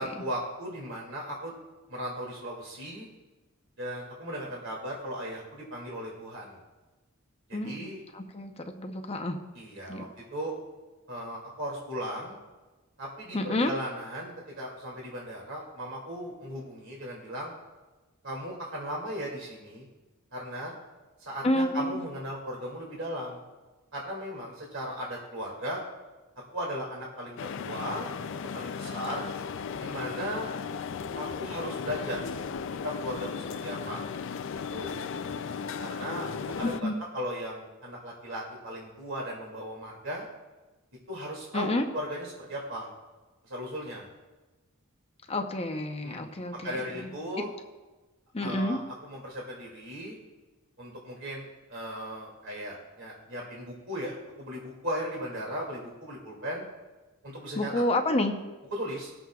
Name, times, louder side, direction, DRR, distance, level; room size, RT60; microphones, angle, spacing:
voice 1, 0.0-1.5 1.9-3.1 3.8-6.6 7.5-8.0 9.5-10.1 10.3-10.6 11.1-12.4 13.0-17.5 18.2-19.9 20.3-20.7 21.3-23.4 23.9-25.8 26.5-28.1 28.5-29.3 29.8-30.5 31.1-32.2 32.8-34.0 34.7-35.0 35.8-40.3 41.1-42.9 43.4-44.1 46.0-46.3 46.6-47.5 48.4-48.8 49.1-50.2 50.8-56.6 57.2-57.7 58.7-59.1, equal, 65° right, -3 dB, 2.4 m, -37 dB
voice 2, 7.5-7.9 8.1-9.4 9.9-10.0 13.3-13.7 21.4-22.0 36.6-37.0 41.5-41.8 45.3-47.1 48.3-48.8 57.6-58.3, left 1 dB, 30° left, 5 dB, 0.7 m, -29 dB
sound 1, 27.4-36.8, left 6 dB, 65° left, 0.4 m, -36 dB
21.0 x 7.5 x 2.4 m, 1.2 s
head